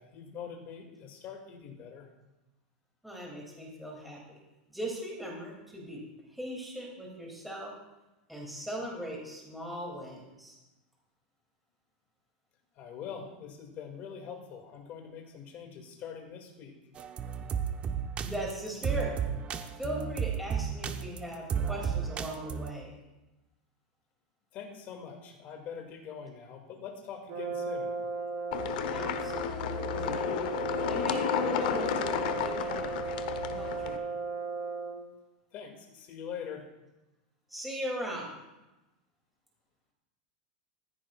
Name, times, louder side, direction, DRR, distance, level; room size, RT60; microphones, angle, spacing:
voice 1, 0.0-2.1 12.7-16.7 24.5-28.0 35.5-36.7, left 7 dB, 40° left, 3 dB, 2.3 m, -43 dB
voice 2, 3.0-4.4 4.7-6.0 6.3-7.7 8.3-10.6 18.2-19.1 19.8-23.0 28.9-30.2 30.9-33.0 33.4-34.1 37.5-38.3, equal, ahead, -3 dB, 2.7 m, -39 dB
sound 1, 17.0-22.7, right 7 dB, 25° right, 0.7 m, -33 dB
Brass instrument, 27.3-35.1, right 4 dB, 60° right, 3.2 m, -36 dB
sound 2, 28.5-34.0, left 10 dB, 70° left, 0.9 m, -32 dB
15.0 x 13.0 x 2.5 m, 1.0 s
supercardioid pair, 140°, 5 cm